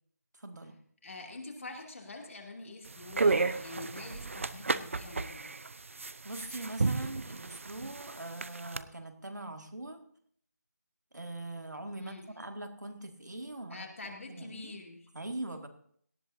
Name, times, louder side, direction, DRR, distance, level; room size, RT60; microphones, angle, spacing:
voice 1, 0.4-0.8 6.2-10.0 11.1-13.8 14.3-14.7 15.1-15.7, right 2 dB, 90° right, 5 dB, 2.0 m, -42 dB
voice 2, 1.0-5.6 12.0-12.3 13.7-15.1, left 3 dB, 50° left, 1 dB, 2.6 m, -46 dB
sound 1, 2.9-8.8, right 3 dB, 50° right, 0.5 m, -33 dB
18.0 x 13.5 x 2.7 m, 0.63 s
figure-of-eight pair, 165°, 9 cm